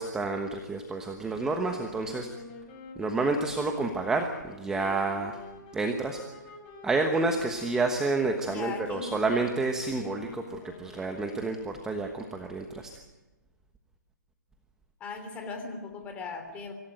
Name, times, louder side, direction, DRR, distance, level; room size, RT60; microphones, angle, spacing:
voice 1, 0.0-2.3 3.0-5.4 5.7-6.2 6.8-13.0, right 3 dB, 5° right, 4 dB, 1.2 m, -29 dB
sound 1, 1.3-11.7, left 2 dB, 30° left, 5.1 m, -47 dB
voice 2, 8.4-9.2 15.0-16.7, left 4 dB, 15° left, 5 dB, 3.1 m, -38 dB
25.5 x 16.5 x 9.2 m, 1.1 s
hypercardioid pair, 165°, 10 cm